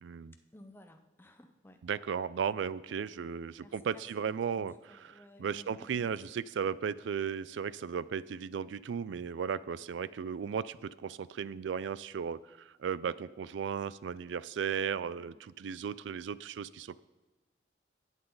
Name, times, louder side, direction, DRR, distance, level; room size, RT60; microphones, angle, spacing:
voice 1, 0.0-0.3 1.8-4.7 5.4-17.0, right 7 dB, 80° right, 19 dB, 0.3 m, -35 dB
voice 2, 0.5-1.8 2.9-6.4 15.2-15.5, left 1 dB, 10° left, 6 dB, 0.6 m, -57 dB
14.5 x 8.1 x 3.9 m, 1.2 s
head